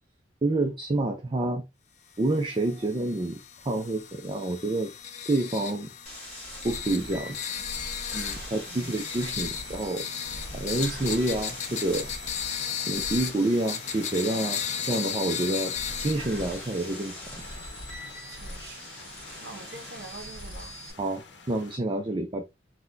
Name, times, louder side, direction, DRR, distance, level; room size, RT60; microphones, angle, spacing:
voice 1, 0.4-1.7 2.2-3.4 3.7-4.9 5.3-5.9 6.6-7.4 8.1-10.0 10.5-12.1 12.9-15.7 16.0-17.2 21.0-22.4, right 2 dB, 30° right, 0.4 m, -28 dB
sound 1, 2.2-17.1, left 8 dB, 40° left, 0.5 m, -36 dB
sound 2, 6.1-20.9, equal, 10° left, 1.7 m, -42 dB
sound 3, 6.7-21.8, left 3 dB, 75° left, 0.8 m, -48 dB
voice 2, 8.7-9.1 18.3-18.9 19.4-20.8, right 2 dB, 65° right, 0.7 m, -45 dB
4.0 x 2.2 x 2.5 m
head